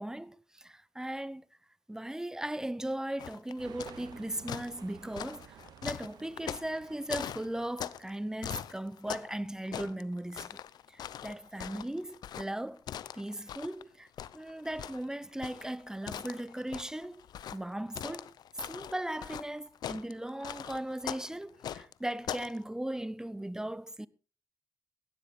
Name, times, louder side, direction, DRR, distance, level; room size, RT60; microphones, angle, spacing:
voice 1, 0.0-1.4 1.9-5.6 5.8-10.6 10.9-12.8 13.1-14.1 14.3-17.2 17.5-18.3 18.6-24.1, right 1 dB, 10° right, 0.9 m, -38 dB
sound 1, 3.2-4.1 4.5-8.1 8.4-9.4 9.6-13.8 14.2-22.6, left 10 dB, 85° left, 0.7 m, -41 dB
sound 2, 3.6-8.5, right 10 dB, 90° right, 1.0 m, -54 dB
17.0 x 12.0 x 4.3 m
cardioid pair, 65°, 7 cm